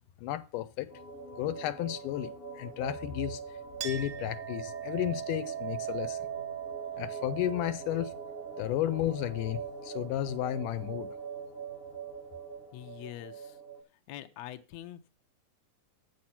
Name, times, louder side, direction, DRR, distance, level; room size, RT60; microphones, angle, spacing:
voice 1, 0.2-0.9 1.4-3.4 3.8-6.2 7.0-8.1 8.6-11.1, left 13 dB, 85° left, 2.3 m, -33 dB
sound 1, 0.9-13.8, right 5 dB, 55° left, 0.6 m, -43 dB
Chink clink, 3.8-10.9, right 12 dB, 75° right, 1.4 m, -41 dB
voice 2, 12.7-13.6 14.1-15.1, left 13 dB, 70° left, 1.8 m, -44 dB
7.9 x 6.7 x 5.8 m
omnidirectional pair, 3.6 m